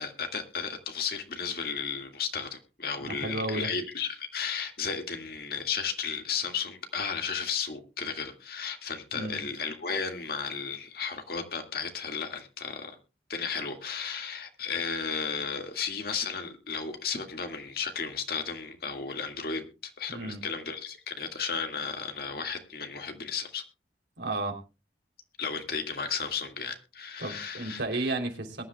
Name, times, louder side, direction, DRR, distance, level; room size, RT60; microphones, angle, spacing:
voice 1, 0.0-13.0 13.3-23.6 25.4-27.8, left 6 dB, 55° left, 5 dB, 2.0 m, -34 dB
voice 2, 3.0-3.7 9.1-9.4 20.1-20.4 24.2-24.6 27.2-28.6, right 2 dB, 70° right, 3 dB, 3.2 m, -33 dB
22.0 x 11.5 x 2.3 m, 0.30 s
head